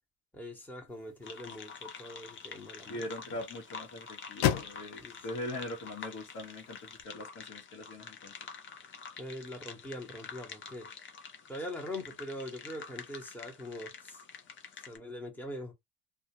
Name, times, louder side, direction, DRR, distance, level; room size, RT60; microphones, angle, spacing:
voice 1, 0.3-3.0 5.0-5.3 9.2-10.9 11.5-14.2 14.8-15.7, left 1 dB, 5° left, 0.9 m, -42 dB
sound 1, 0.9-7.0, left 11 dB, 80° left, 0.6 m, -38 dB
sound 2, 1.2-15.0, left 6 dB, 40° left, 0.7 m, -48 dB
voice 2, 2.9-8.3, left 1 dB, 55° left, 1.1 m, -41 dB
2.3 x 2.2 x 2.9 m
supercardioid pair, 85°, 31 cm